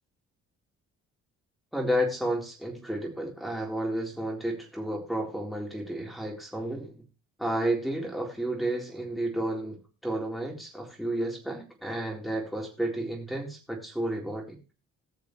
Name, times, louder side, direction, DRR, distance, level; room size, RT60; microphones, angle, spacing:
voice 1, 1.7-7.0 7.4-9.8 10.0-14.6, right 1 dB, ahead, -1 dB, 4.0 m, -31 dB
19.5 x 6.7 x 3.2 m, 0.32 s
cardioid pair, 90°, 30 cm